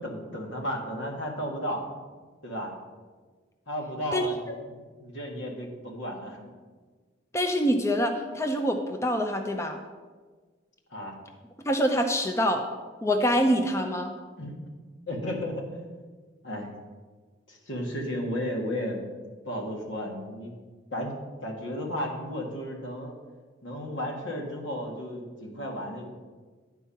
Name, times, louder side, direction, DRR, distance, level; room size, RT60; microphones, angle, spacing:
voice 1, 0.0-1.9 2.4-2.7 3.7-6.4 10.9-11.2 14.4-14.5 15.1-15.8 16.4-16.7 17.5-19.0 19.4-20.5 20.9-23.1 23.6-26.0, equal, 85° left, 1 dB, 1.6 m, -34 dB
voice 2, 7.3-9.8 11.7-12.6 13.0-14.1, equal, 15° left, 4 dB, 0.5 m, -25 dB
9.9 x 4.6 x 5.7 m, 1.4 s
head